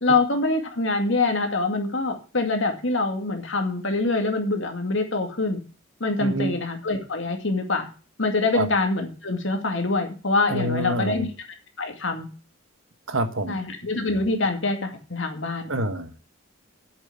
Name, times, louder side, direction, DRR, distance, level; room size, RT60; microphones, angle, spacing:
voice 1, 0.0-5.6 6.0-7.9 8.2-11.3 11.8-12.3 13.5-15.7, left 3 dB, 65° left, 2.1 m, -25 dB
voice 2, 6.2-6.5 8.5-8.7 10.5-11.3 13.1-13.6 15.7-16.2, right 1 dB, 70° right, 1.3 m, -27 dB
8.1 x 7.1 x 8.5 m
head